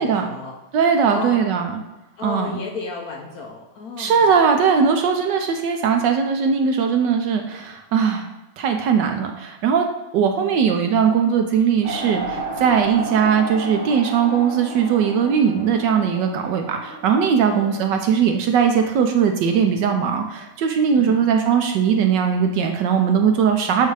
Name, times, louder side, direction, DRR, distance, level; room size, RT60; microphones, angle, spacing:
voice 1, 0.0-0.6 1.1-1.4 2.2-4.3 10.4-10.7 17.5-17.7 21.0-21.2 23.7-23.8, left 4 dB, 60° left, 0 dB, 1.0 m, -33 dB
voice 2, 0.7-1.7 2.2-2.5 4.0-8.3 8.6-9.8 10.1-23.9, right 7 dB, 75° right, 5 dB, 1.1 m, -19 dB
sound 1, 11.8-17.9, right 3 dB, 30° right, 1.0 m, -32 dB
8.1 x 2.7 x 4.7 m, 1.0 s
omnidirectional pair, 2.2 m